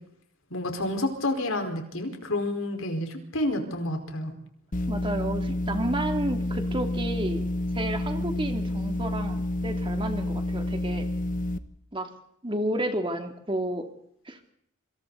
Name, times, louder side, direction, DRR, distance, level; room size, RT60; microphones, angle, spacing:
voice 1, 0.5-4.3 8.2-8.3, left 1 dB, 70° left, 4 dB, 4.8 m, -29 dB
sound 1, 4.7-11.6, left 1 dB, 40° left, 1.3 m, -29 dB
voice 2, 4.9-7.4 7.7-11.1 11.9-12.1 12.4-13.9 14.3-14.5, right 1 dB, 25° right, 5 dB, 2.8 m, -31 dB
27.0 x 26.5 x 4.1 m, 0.70 s
head